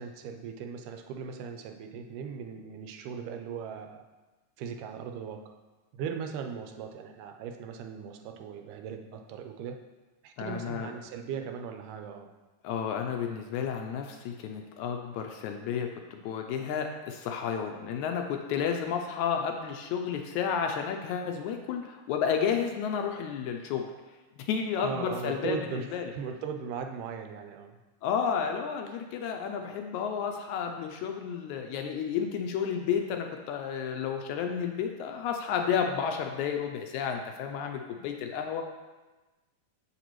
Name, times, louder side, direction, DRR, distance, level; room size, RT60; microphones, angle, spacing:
voice 1, 0.0-4.0 4.6-5.5 5.9-9.8 10.2-12.3 24.8-25.9 26.1-27.8, right 6 dB, 85° right, 5 dB, 2.2 m, -38 dB
voice 2, 10.4-10.9 12.6-23.9 24.4-26.1 28.0-38.6, left 7 dB, 80° left, 4 dB, 1.8 m, -31 dB
7.3 x 6.7 x 3.0 m, 1.2 s
omnidirectional pair, 3.6 m